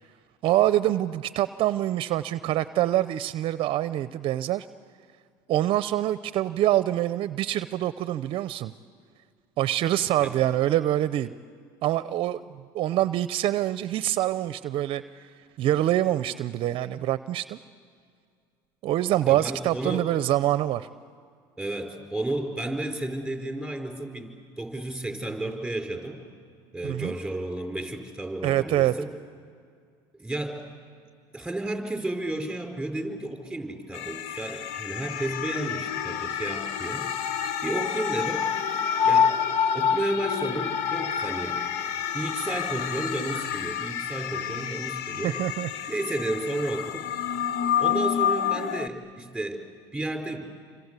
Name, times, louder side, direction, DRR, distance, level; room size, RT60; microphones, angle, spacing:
voice 1, 0.4-4.7 5.5-8.7 9.6-11.3 11.8-15.0 15.6-17.6 18.8-20.9 26.8-27.2 28.4-28.9 45.2-45.7, right 13 dB, 55° right, 14 dB, 0.6 m, -25 dB
voice 2, 19.3-20.1 21.6-26.2 26.7-29.1 30.2-30.6 31.3-37.1 37.6-38.5 39.0-39.4 39.7-41.6 42.1-45.4 45.9-47.1 47.8-49.6 49.9-50.5, right 1 dB, 5° right, 4 dB, 4.8 m, -32 dB
sound 1, 33.9-48.9, left 8 dB, 75° left, 0.9 m, -28 dB
27.5 x 25.5 x 8.3 m, 2.2 s
supercardioid pair, 100°, 11 cm